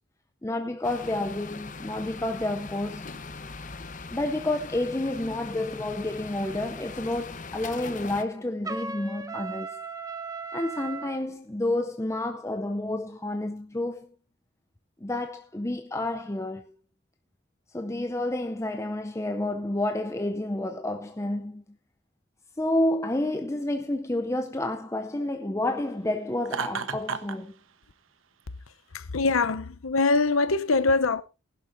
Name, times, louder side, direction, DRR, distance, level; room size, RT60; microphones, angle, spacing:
voice 1, 0.4-3.1 4.1-9.8 10.5-14.1 15.0-16.7 17.7-21.6 22.6-27.5, left 1 dB, 15° left, 0.6 m, -30 dB
sound 1, 0.8-8.2, left 4 dB, 40° left, 1.0 m, -40 dB
Trumpet, 8.6-11.2, right 4 dB, 15° right, 0.9 m, -36 dB
Laughter, 26.4-27.4, right 5 dB, 80° right, 1.1 m, -32 dB
voice 2, 28.9-31.2, left 3 dB, 90° left, 0.8 m, -23 dB
20.0 x 11.5 x 2.6 m
head